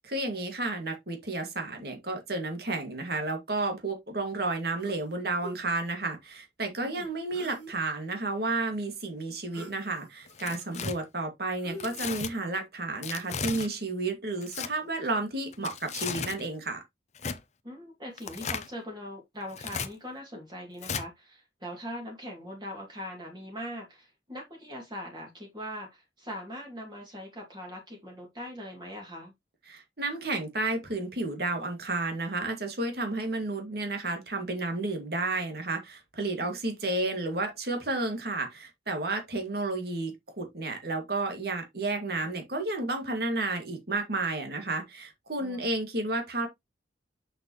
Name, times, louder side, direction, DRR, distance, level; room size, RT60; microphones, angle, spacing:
voice 1, 0.0-16.8 29.7-46.5, right 2 dB, 55° right, 2.4 m, -32 dB
sound 1, 4.8-5.1 5.4-5.6 7.3-7.9 9.5-9.8 10.2-10.8 11.5-12.4 13.4-13.9, right 1 dB, 80° right, 5.1 m, -44 dB
Tearing, 10.3-10.9 11.8-12.3 13.0-13.7 14.4-14.7 15.5-16.4 17.2-17.4 18.2-18.7 19.5-19.9 20.8-21.0, left 6 dB, 35° left, 0.8 m, -35 dB
voice 2, 17.6-29.3 36.4-36.6 45.4-45.7, equal, 25° right, 2.6 m, -41 dB
6.7 x 5.9 x 3.1 m
head